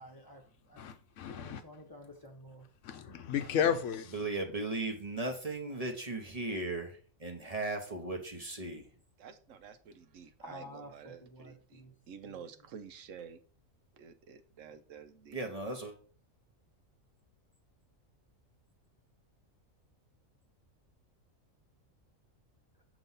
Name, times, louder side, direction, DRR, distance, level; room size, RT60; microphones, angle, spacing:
voice 1, 0.0-0.8 1.4-2.7 10.4-11.9 12.2-12.4, equal, 20° left, 0.8 m, -51 dB
voice 2, 0.8-1.6 2.8-4.1, left 8 dB, 70° left, 0.9 m, -33 dB
voice 3, 4.1-8.9 15.3-15.9, right 2 dB, 30° right, 0.9 m, -37 dB
voice 4, 9.2-13.4 13.9-15.4, right 7 dB, 75° right, 1.0 m, -50 dB
6.8 x 3.0 x 5.4 m
omnidirectional pair, 1.4 m